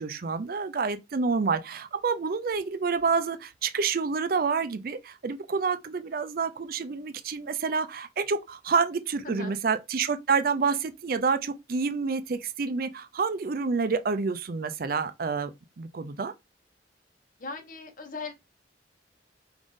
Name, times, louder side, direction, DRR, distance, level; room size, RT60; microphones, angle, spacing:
voice 1, 0.0-16.3, right 5 dB, 55° right, 0.5 m, -28 dB
voice 2, 17.4-18.3, left 3 dB, 50° left, 1.0 m, -38 dB
4.9 x 2.6 x 3.6 m
head